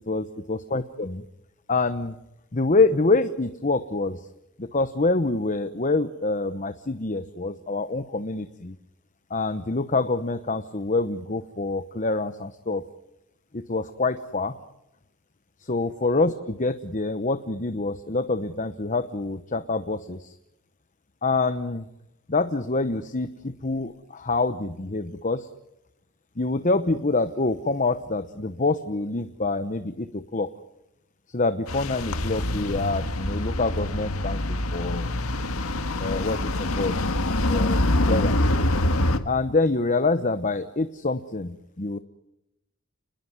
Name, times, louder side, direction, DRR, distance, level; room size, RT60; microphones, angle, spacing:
voice 1, 0.1-1.2 1.7-2.2 2.5-4.3 4.6-8.8 9.3-12.8 13.5-14.5 15.6-20.4 21.2-21.9 22.3-25.5 26.4-30.5 31.3-35.2 36.0-37.0 37.5-38.5 39.2-42.0, left 3 dB, 35° left, 10 dB, 1.0 m, -26 dB
sound 1, 31.7-39.2, left 1 dB, 75° left, 1.9 m, -25 dB
29.5 x 21.0 x 9.6 m, 0.89 s
head